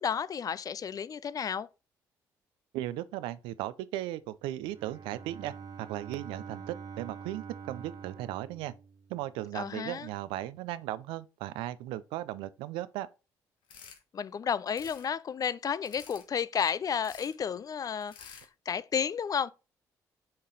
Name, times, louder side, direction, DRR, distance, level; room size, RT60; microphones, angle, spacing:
voice 1, 0.0-1.7 9.5-10.1 14.1-19.5, left 7 dB, 45° left, 0.4 m, -32 dB
voice 2, 2.7-8.7 9.1-13.1, right 14 dB, 80° right, 0.4 m, -37 dB
Bowed string instrument, 4.6-9.5, right 6 dB, 50° right, 1.4 m, -46 dB
sound 1, 13.7-14.0 14.7-15.1 15.8-16.3 17.0-17.3 18.0-18.5, left 7 dB, 70° left, 1.2 m, -50 dB
6.3 x 4.0 x 4.0 m
hypercardioid pair, 55°, 9 cm